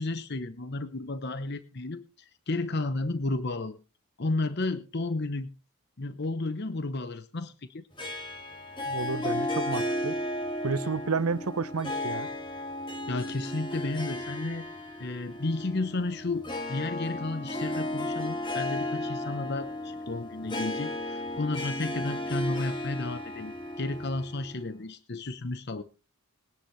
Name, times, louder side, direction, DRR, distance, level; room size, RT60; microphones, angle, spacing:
voice 1, 0.0-2.0 2.5-3.8 4.2-5.5 6.0-7.8 13.1-14.7 15.0-25.8, left 2 dB, 50° left, 0.8 m, -32 dB
Harp, 8.0-24.7, left 1 dB, 20° left, 2.1 m, -34 dB
voice 2, 8.8-10.2 10.6-12.3, right 4 dB, 85° right, 0.8 m, -31 dB
21.0 x 10.0 x 3.2 m
head